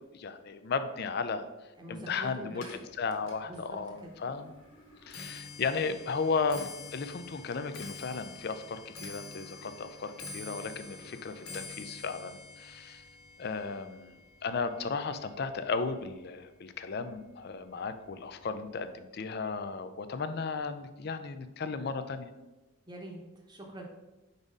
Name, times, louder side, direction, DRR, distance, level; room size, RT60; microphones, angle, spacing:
voice 1, 0.1-1.5 1.9-4.5 5.1-13.0 13.4-22.3, left 4 dB, 45° left, 10 dB, 0.4 m, -35 dB
voice 2, 1.8-2.6 3.4-4.1 22.9-23.2 23.5-23.8, right 1 dB, 20° right, 0 dB, 0.9 m, -44 dB
Clock, 2.5-15.9 16.2-16.7 17.5-17.6 17.9-18.3 18.5-18.6, left 3 dB, 85° left, 1.4 m, -47 dB
4.8 x 4.1 x 5.2 m, 1.1 s
head